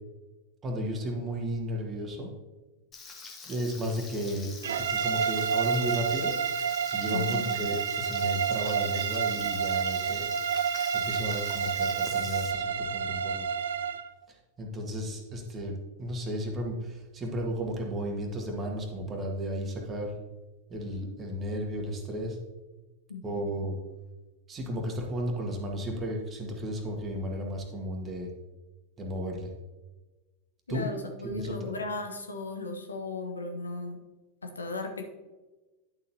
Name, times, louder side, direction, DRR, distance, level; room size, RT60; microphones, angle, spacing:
voice 1, 0.6-2.3 3.4-4.5 4.8-10.3 10.9-13.5 14.3-20.2 20.7-22.4 23.2-23.8 24.5-28.3 29.0-29.5 30.7-30.8 31.2-31.7, equal, 25° right, 1 dB, 1.7 m, -34 dB
Frying (food), 2.9-12.5, left 4 dB, 25° left, 1.6 m, -45 dB
sound 1, 4.6-14.1, right 7 dB, 65° right, 0.4 m, -29 dB
voice 2, 7.1-7.5 23.1-23.5 30.7-34.0 34.4-35.1, left 3 dB, 75° left, 4 dB, 1.1 m, -36 dB
11.0 x 7.0 x 2.8 m, 1.2 s
figure-of-eight pair, 90°, 0 cm